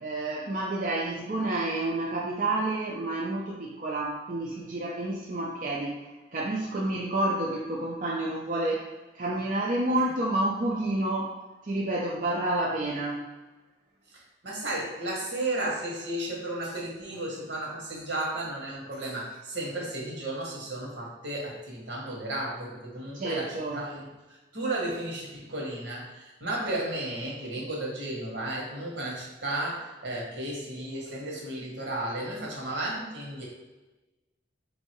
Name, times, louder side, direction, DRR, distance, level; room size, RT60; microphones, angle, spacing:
voice 1, 0.0-11.3 11.6-13.3 23.1-23.8, right 2 dB, 45° right, -3 dB, 0.5 m, -29 dB
voice 2, 14.1-33.4, right 1 dB, 80° right, -3 dB, 1.3 m, -34 dB
3.6 x 2.7 x 4.4 m, 1.2 s
head